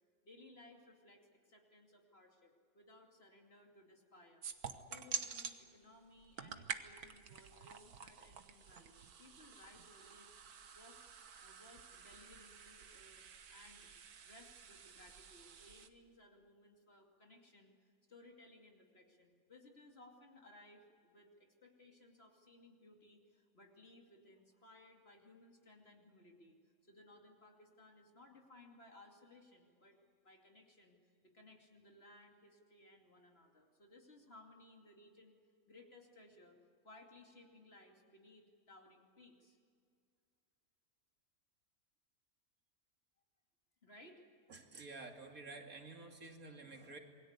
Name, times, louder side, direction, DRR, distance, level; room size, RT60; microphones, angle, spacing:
voice 1, 0.2-4.5 4.9-10.3 10.7-11.1 11.4-13.9 14.2-26.6 26.8-30.0 30.2-35.3 35.7-36.6 36.8-39.6 43.8-44.2, left 2 dB, 40° left, 1 dB, 2.9 m, -61 dB
sound 1, 4.4-5.6 6.2-15.9, right 6 dB, 85° right, 1.7 m, -49 dB
voice 2, 44.5-47.0, right 3 dB, 70° right, 3 dB, 2.9 m, -51 dB
27.5 x 21.5 x 8.2 m, 2.2 s
omnidirectional pair, 1.5 m